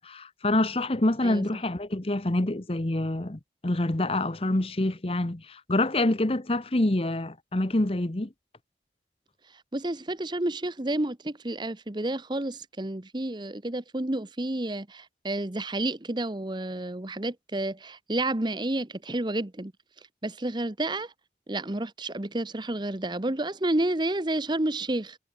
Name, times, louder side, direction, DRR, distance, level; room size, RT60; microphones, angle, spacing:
voice 1, 0.0-8.3, left 1 dB, 35° left, 1.0 m, -26 dB
voice 2, 1.2-1.6 9.7-19.7 20.2-21.1 21.5-25.2, right 1 dB, 25° right, 1.0 m, -30 dB
head